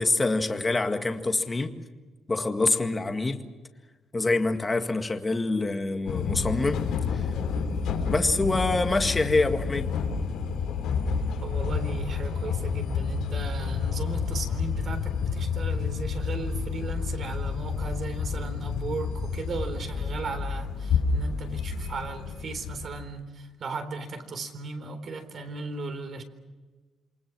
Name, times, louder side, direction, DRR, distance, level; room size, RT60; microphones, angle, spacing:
voice 1, 0.0-1.8 2.3-3.5 4.1-6.8 7.1-7.2 8.1-9.9, left 2 dB, 20° left, 2.0 m, -25 dB
sound 1, 6.1-23.0, left 5 dB, 90° left, 4.2 m, -29 dB
voice 2, 11.4-26.2, right 4 dB, 45° right, 4.1 m, -36 dB
28.5 x 24.0 x 6.3 m
cardioid pair, 140°, 0 cm